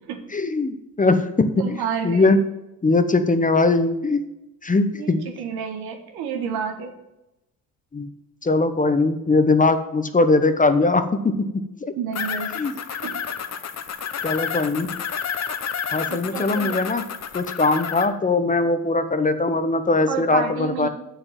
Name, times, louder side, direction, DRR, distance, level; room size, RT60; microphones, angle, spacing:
voice 1, 0.3-1.5 2.0-2.4 2.8-4.2 4.6-5.2 7.9-8.1 8.4-11.5 11.8-11.9 12.6-12.7 14.2-14.9 15.9-17.0 17.3-20.9, left 3 dB, 20° left, 10 dB, 0.9 m, -20 dB
voice 2, 1.6-2.4 4.9-6.9 12.0-12.6 12.9-13.2 16.0-16.8 20.1-20.9, right 7 dB, 75° right, 6 dB, 1.7 m, -30 dB
sound 1, 12.1-18.1, left 7 dB, 45° left, 1.1 m, -30 dB
7.0 x 6.8 x 7.6 m, 0.90 s
supercardioid pair, 75°, 38 cm